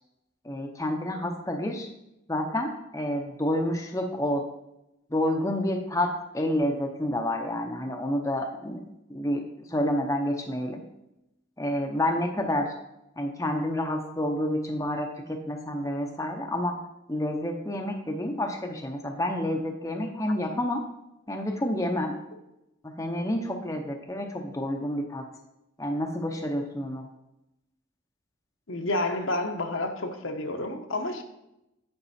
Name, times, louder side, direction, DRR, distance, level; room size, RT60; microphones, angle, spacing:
voice 1, 0.4-1.9 2.3-4.4 5.1-10.8 11.6-12.7 13.2-16.8 17.1-20.8 21.3-22.2 23.0-25.3 25.8-27.1, left 1 dB, 15° left, 3 dB, 0.7 m, -29 dB
voice 2, 28.7-31.2, left 2 dB, 70° left, 5 dB, 1.0 m, -30 dB
9.9 x 5.3 x 4.2 m, 0.89 s
head